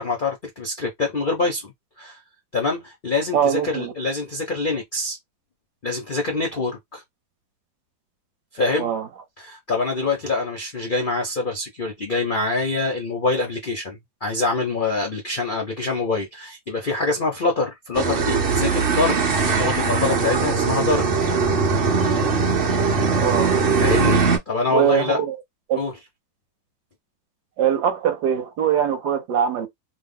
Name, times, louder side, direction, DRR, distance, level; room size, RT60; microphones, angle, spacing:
voice 1, 0.0-1.7 2.0-2.2 2.5-5.2 5.8-7.0 8.5-8.9 9.4-19.2 19.5-21.1 23.8-25.2 25.8-25.9, left 3 dB, 65° left, 0.5 m, -25 dB
voice 2, 3.3-3.9 8.8-9.1 23.2-23.6 24.7-25.4 25.7-25.8 27.6-29.7, right 8 dB, 65° right, 1.2 m, -22 dB
sound 1, 17.9-24.4, right 4 dB, 50° right, 0.7 m, -20 dB
3.1 x 2.1 x 3.6 m
omnidirectional pair, 2.1 m